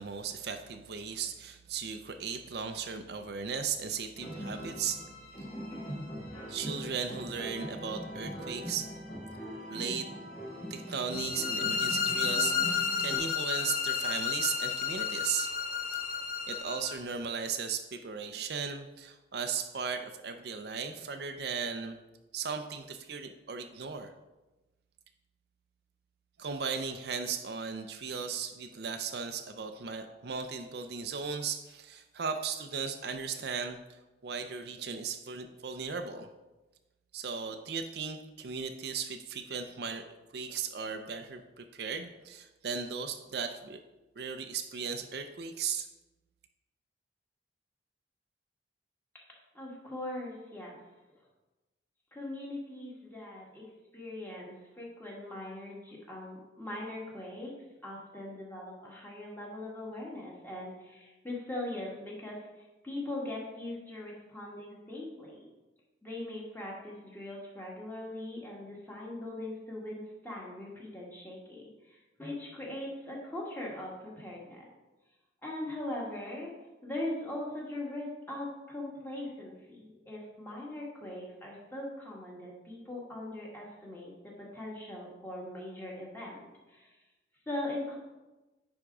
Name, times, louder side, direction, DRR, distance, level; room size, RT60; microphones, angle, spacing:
voice 1, 0.0-5.0 6.5-8.9 9.7-10.1 10.7-15.5 15.9-16.0 16.5-22.0 22.3-24.1 26.4-36.3 37.1-43.8 44.2-45.9, right 6 dB, 60° right, 7 dB, 0.5 m, -36 dB
sound 1, 4.1-13.2, equal, 30° left, 2.5 m, -41 dB
sound 2, 11.1-17.0, left 6 dB, 50° left, 0.8 m, -32 dB
voice 2, 49.5-50.8 52.1-57.5 57.8-62.4 62.8-65.4 66.0-74.7 75.4-76.5 76.8-86.4 86.7-86.9 87.5-88.0, left 1 dB, 10° left, -4 dB, 1.7 m, -40 dB
10.0 x 3.6 x 4.8 m, 1.1 s
head